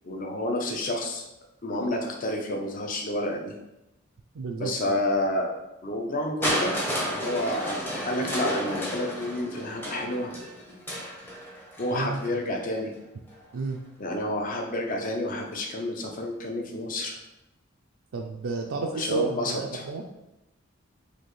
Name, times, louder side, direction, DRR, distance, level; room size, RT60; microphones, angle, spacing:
voice 1, 0.0-1.2 1.6-3.6 4.6-5.5 5.8-10.3 11.8-12.9 14.0-17.2 19.0-19.8, left 1 dB, 45° left, 2 dB, 0.6 m, -30 dB
voice 2, 4.3-5.0 11.9-12.2 13.5-13.8 18.1-20.0, right 4 dB, 75° right, 2 dB, 0.4 m, -31 dB
Crushing, 6.4-12.3 13.3-13.4, equal, 10° left, 0.7 m, -32 dB
4.3 x 2.7 x 3.1 m, 0.93 s
head